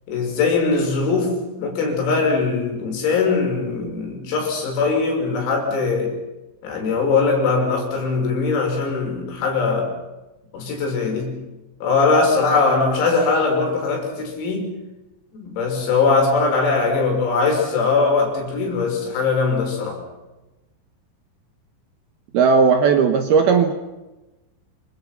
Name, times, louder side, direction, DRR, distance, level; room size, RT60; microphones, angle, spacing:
voice 1, 0.1-6.1 6.6-9.9 10.5-11.4 11.8-14.7 15.4-20.0, left 4 dB, 90° left, 1 dB, 8.7 m, -21 dB
voice 2, 22.3-23.7, right 5 dB, 70° right, 7 dB, 2.5 m, -16 dB
28.0 x 25.5 x 5.9 m, 1.1 s
omnidirectional pair, 6.0 m